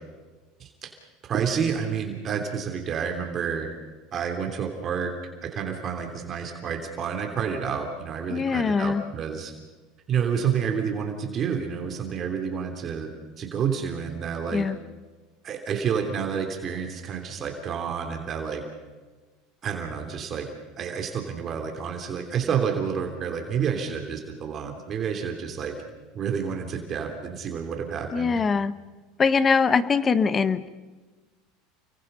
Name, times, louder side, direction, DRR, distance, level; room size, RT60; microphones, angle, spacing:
voice 1, 0.6-0.9 1.2-3.7 4.1-5.1 5.4-9.5 10.1-13.1 13.4-14.6 15.4-18.6 19.6-20.5 20.8-25.7 26.1-28.4, right 7 dB, 35° right, 3 dB, 3.2 m, -29 dB
voice 2, 8.3-9.0 14.5-14.8 28.1-28.7 29.2-30.7, left 5 dB, 25° left, 14 dB, 1.1 m, -22 dB
30.0 x 23.5 x 5.6 m, 1.3 s
supercardioid pair, 120°, 0 cm